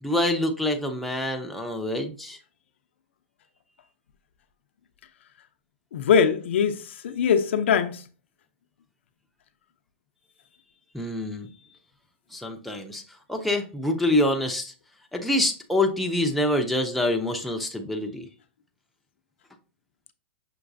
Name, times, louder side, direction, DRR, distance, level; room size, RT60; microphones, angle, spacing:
voice 1, 0.0-2.4 10.9-11.5 12.3-13.0 13.3-14.7 15.1-18.3, left 1 dB, ahead, 0.5 m, -26 dB
voice 2, 5.9-8.0, left 7 dB, 80° left, 0.5 m, -22 dB
5.9 x 3.0 x 2.6 m
hypercardioid pair, 145°, 6 cm